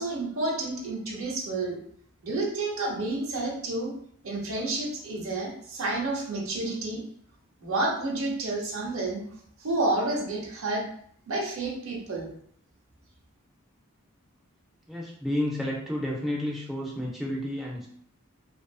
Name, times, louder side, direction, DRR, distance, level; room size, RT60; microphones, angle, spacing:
voice 1, 0.0-1.8 2.2-3.9 4.2-7.0 7.6-9.2 9.6-10.8 11.3-12.3, right 2 dB, 75° right, -1 dB, 0.8 m, -30 dB
voice 2, 14.9-17.9, left 1 dB, ahead, -4 dB, 0.3 m, -31 dB
2.6 x 2.4 x 2.3 m, 0.63 s
head